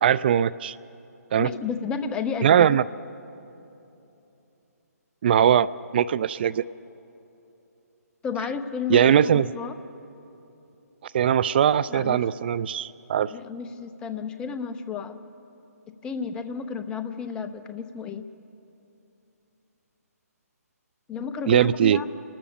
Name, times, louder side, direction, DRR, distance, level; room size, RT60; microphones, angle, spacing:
voice 1, 0.0-0.8 1.3-1.5 2.4-2.8 5.2-5.7 5.9-6.6 8.9-9.5 11.1-13.3 21.5-22.0, right 9 dB, 35° right, 19 dB, 0.3 m, -20 dB
voice 2, 1.4-2.7 8.2-9.7 11.9-12.2 13.3-15.2 15.9-18.3 21.1-22.1, left 6 dB, 10° left, 9 dB, 0.6 m, -32 dB
28.5 x 13.0 x 7.1 m, 2.9 s
hypercardioid pair, 150°, 9 cm